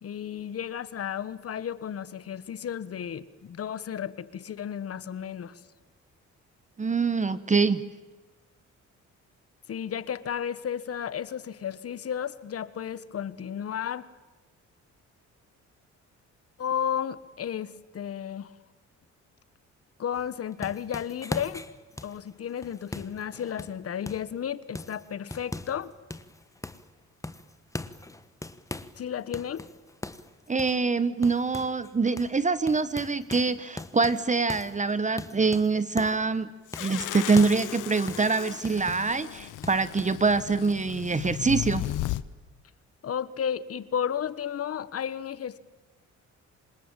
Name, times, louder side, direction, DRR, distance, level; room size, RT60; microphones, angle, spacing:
voice 1, 0.0-5.6 9.7-14.1 16.6-18.5 20.0-21.7 22.0-25.9 29.0-29.7 43.0-45.6, left 8 dB, 50° left, 16 dB, 1.2 m, -33 dB
voice 2, 6.8-7.8 30.5-36.5 36.8-41.9, right 4 dB, 25° right, 14 dB, 1.0 m, -25 dB
sound 1, 20.1-24.3 24.8-25.8 26.1-26.9 27.2-29.0 29.3-31.9 32.2-32.4 32.7-36.3 36.7-39.2 39.6-40.0, left 2 dB, 10° left, 1.2 m, -40 dB
sound 2, 36.7-42.2, left 15 dB, 85° left, 0.9 m, -35 dB
27.0 x 20.5 x 9.0 m, 1.2 s
cardioid pair, 90°, 30 cm